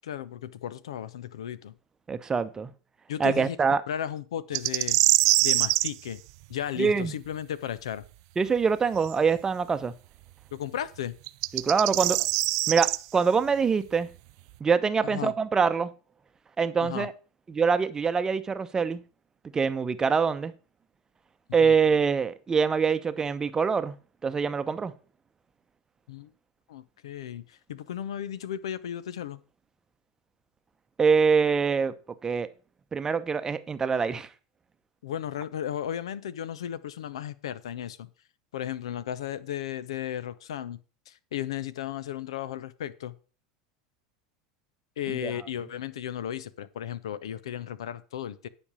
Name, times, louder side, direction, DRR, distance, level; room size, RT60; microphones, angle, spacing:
voice 1, 0.0-1.7 3.1-3.6 3.9-5.0 5.4-6.2 6.5-8.0 10.5-11.2 15.0-15.3 16.8-17.1 21.6-21.7 26.1-26.3 26.7-29.4 35.0-38.1 38.5-40.8 41.1-43.1 45.0-48.5, left 10 dB, 75° left, 0.7 m, -35 dB
voice 2, 2.1-2.7 3.2-3.8 6.8-7.1 8.4-9.9 11.5-12.3 12.7-14.1 14.6-15.9 16.6-17.1 17.5-19.0 19.5-20.5 21.5-23.9 24.2-24.9 31.0-31.9 32.2-32.5 32.9-34.3 45.1-45.3, right 5 dB, 20° right, 0.8 m, -24 dB
sound 1, 4.5-5.9 9.1-9.2 11.3-13.0, right 20 dB, 60° right, 0.4 m, -23 dB
9.9 x 5.3 x 6.1 m
hypercardioid pair, 90°, 3 cm